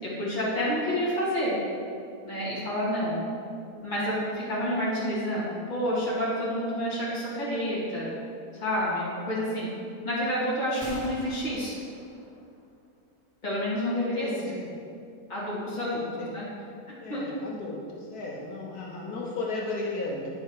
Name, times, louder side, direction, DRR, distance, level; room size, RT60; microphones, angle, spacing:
voice 1, 0.0-1.6 2.2-3.2 3.8-8.1 8.5-9.7 10.0-11.8 13.4-14.3 15.3-16.4 17.1-17.2, equal, 30° left, -9 dB, 2.5 m, -29 dB
Gunshot gunfire, 10.7-12.7, equal, 25° right, 1.7 m, -45 dB
voice 2, 14.2-14.7 15.7-16.3 17.0-20.3, left 3 dB, 75° left, -3 dB, 1.6 m, -35 dB
10.0 x 5.6 x 4.8 m, 2.5 s
omnidirectional pair, 1.6 m